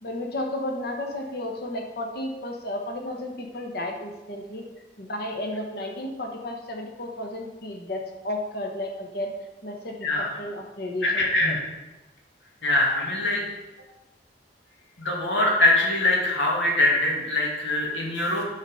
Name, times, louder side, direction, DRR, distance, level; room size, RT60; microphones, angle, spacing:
voice 1, 0.0-4.6 5.0-9.3 9.6-11.6, left 1 dB, 55° left, 2 dB, 1.1 m, -33 dB
voice 2, 11.0-11.6 12.6-13.4 15.0-18.4, left 2 dB, 85° left, -2 dB, 2.2 m, -23 dB
9.6 x 4.2 x 5.5 m, 1.1 s
head